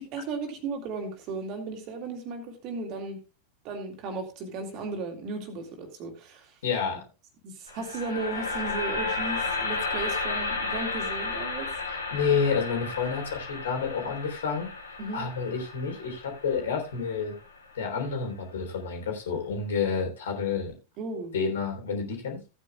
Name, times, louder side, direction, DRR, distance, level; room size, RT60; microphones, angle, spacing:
voice 1, 0.0-3.2 3.6-6.6 7.4-11.7 15.0-15.3 21.0-21.3, right 3 dB, 40° right, 5 dB, 2.5 m, -35 dB
voice 2, 6.6-7.0 12.1-14.7 15.1-17.3 17.8-20.7 21.3-22.4, left 5 dB, 60° left, 2 dB, 3.5 m, -29 dB
sound 1, 7.7-17.8, left 3 dB, 75° left, 2.5 m, -33 dB
16.0 x 9.1 x 2.3 m, 0.31 s
figure-of-eight pair, 90°, 0 cm